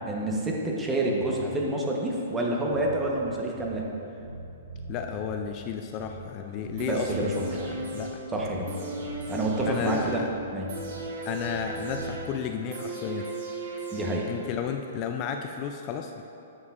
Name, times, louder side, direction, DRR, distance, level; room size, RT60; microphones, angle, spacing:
voice 1, 0.1-3.9 6.9-7.6 8.3-8.7 9.3-10.2 10.5-10.7 13.9-14.3, right 1 dB, 15° right, -1 dB, 0.9 m, -28 dB
Bass guitar, 2.7-6.3 6.6-8.7 9.0-11.1 11.4-12.2, right 3 dB, 90° right, 1.2 m, -43 dB
voice 2, 4.9-8.1 9.7-10.3 11.3-13.3 14.3-16.2, left 7 dB, 35° left, 4 dB, 0.3 m, -33 dB
sound 1, 6.8-14.8 15.1-15.2, right 1 dB, 55° right, 1.2 m, -36 dB
9.4 x 5.6 x 2.4 m, 2.8 s
hypercardioid pair, 125°, 0 cm